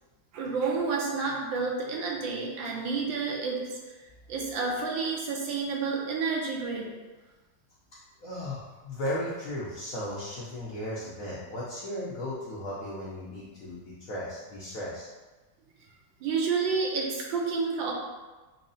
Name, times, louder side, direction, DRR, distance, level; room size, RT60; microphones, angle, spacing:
voice 1, 0.3-3.8 4.3-6.9 16.2-17.9, right 4 dB, 75° right, -1 dB, 1.3 m, -30 dB
voice 2, 8.2-13.8 14.1-15.1, left 1 dB, 70° left, -8 dB, 0.8 m, -35 dB
5.7 x 2.0 x 2.6 m, 1.2 s
omnidirectional pair, 2.2 m